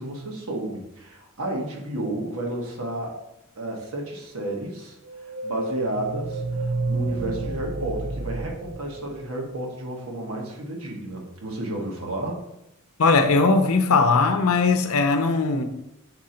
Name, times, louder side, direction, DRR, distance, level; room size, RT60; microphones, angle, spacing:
voice 1, 0.0-3.2 3.6-5.0 5.4-12.4, right 1 dB, 75° right, 0 dB, 1.3 m, -32 dB
sound 1, 5.0-9.7, right 2 dB, 50° right, 0.4 m, -30 dB
voice 2, 13.0-15.6, left 4 dB, 80° left, 8 dB, 0.7 m, -19 dB
6.0 x 3.8 x 4.4 m, 0.87 s
head